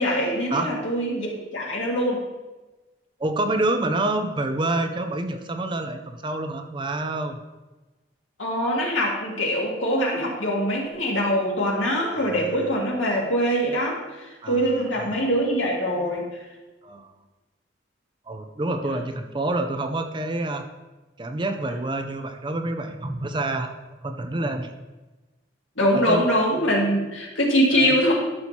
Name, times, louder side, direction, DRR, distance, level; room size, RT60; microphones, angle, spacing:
voice 1, 0.0-2.2 8.4-16.3 25.8-28.1, equal, 85° left, -2 dB, 2.0 m, -23 dB
voice 2, 3.2-7.4 12.1-12.6 14.4-15.3 16.8-17.1 18.3-20.6 21.2-23.7 24.0-24.8 25.9-26.3 27.7-28.0, right 2 dB, 25° right, 6 dB, 0.5 m, -28 dB
12.0 x 6.2 x 2.8 m, 1.2 s
head